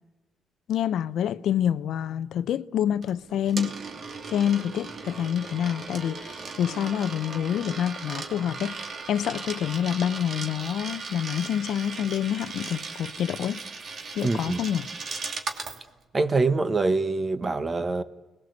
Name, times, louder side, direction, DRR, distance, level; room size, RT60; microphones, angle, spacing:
voice 1, 0.7-3.7 4.3-8.8 9.1-13.6 14.2-14.9, left 9 dB, 75° left, 0.8 m, -27 dB
Coin (dropping), 3.0-15.8, right 4 dB, 50° right, 2.7 m, -37 dB
voice 2, 14.2-14.6 16.1-18.0, right 3 dB, 30° right, 1.6 m, -24 dB
30.0 x 20.0 x 8.2 m
cardioid pair, 90°, 0 cm